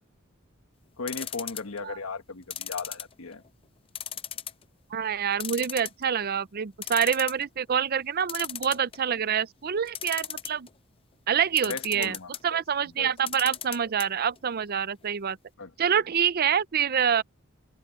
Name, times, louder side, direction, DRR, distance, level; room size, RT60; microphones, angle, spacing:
voice 1, 1.0-3.4 11.6-13.1 15.6-15.7, left 4 dB, 80° left, 1.5 m, -37 dB
sound 1, 1.1-1.8 2.5-3.5 3.9-4.6 5.0-5.1 5.4-6.2 6.6-6.7 6.8-7.4 8.3-9.2 9.9-10.7 11.6-12.4 13.2-14.1 14.4-14.5 14.7-14.8, left 10 dB, 25° left, 0.5 m, -36 dB
voice 2, 4.9-10.7 11.3-12.2 12.4-15.4 15.8-17.2, right 8 dB, 45° right, 0.5 m, -26 dB
head